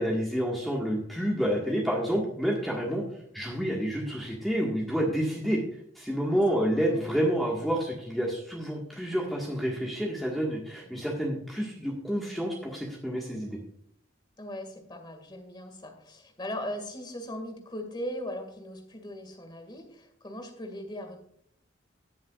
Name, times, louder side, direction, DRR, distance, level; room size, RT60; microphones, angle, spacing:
voice 1, 0.0-3.0 3.3-5.6 6.0-13.6, equal, ahead, -3 dB, 1.6 m, -29 dB
voice 2, 6.7-7.3 10.8-11.1 14.4-21.2, equal, 25° left, 4 dB, 2.0 m, -39 dB
18.0 x 7.1 x 2.4 m, 0.67 s
head